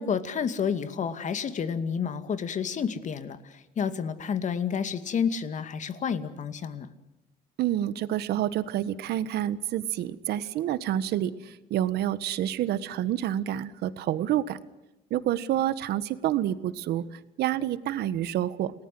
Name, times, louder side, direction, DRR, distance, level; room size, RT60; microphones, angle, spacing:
voice 1, 0.0-6.9, left 7 dB, 45° left, 11 dB, 2.3 m, -30 dB
voice 2, 7.6-14.6 15.1-18.7, right 12 dB, 75° right, 14 dB, 1.5 m, -28 dB
29.5 x 19.5 x 7.9 m, 0.98 s
cardioid pair, 110°, 17 cm